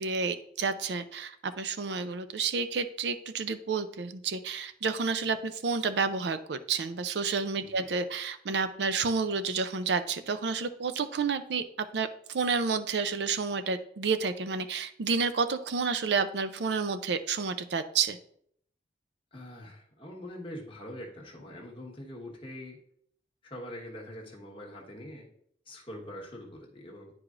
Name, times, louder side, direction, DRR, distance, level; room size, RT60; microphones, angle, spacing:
voice 1, 0.0-18.2, right 5 dB, 75° right, 11 dB, 0.5 m, -30 dB
voice 2, 19.3-22.8 23.4-25.3 25.7-27.1, left 1 dB, 30° left, -2 dB, 1.3 m, -43 dB
9.5 x 4.8 x 2.5 m, 0.66 s
head